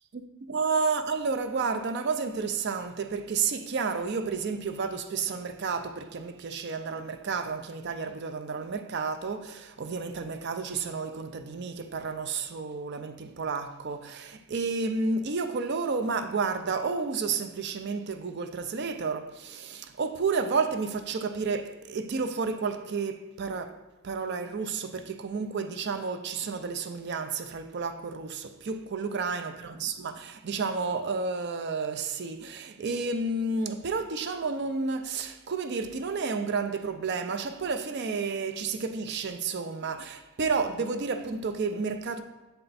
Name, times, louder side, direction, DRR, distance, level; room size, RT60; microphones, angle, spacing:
voice 1, 0.1-42.2, right 4 dB, 50° right, 0.5 m, -31 dB
6.7 x 4.4 x 4.0 m
head